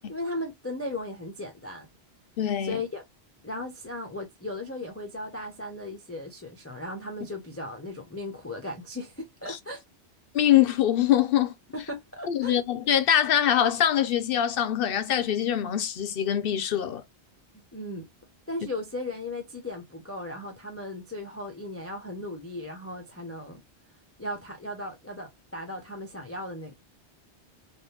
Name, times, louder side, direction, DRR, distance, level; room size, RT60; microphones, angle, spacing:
voice 1, 0.1-1.9 2.6-3.0 3.4-9.8 11.7-12.6 17.7-18.1 18.5-23.6 24.2-26.7, left 1 dB, 15° left, 0.6 m, -36 dB
voice 2, 2.4-2.8 9.5-9.6 10.3-11.5 12.3-17.0, left 10 dB, 65° left, 0.7 m, -23 dB
3.4 x 2.5 x 2.7 m
omnidirectional pair, 1.2 m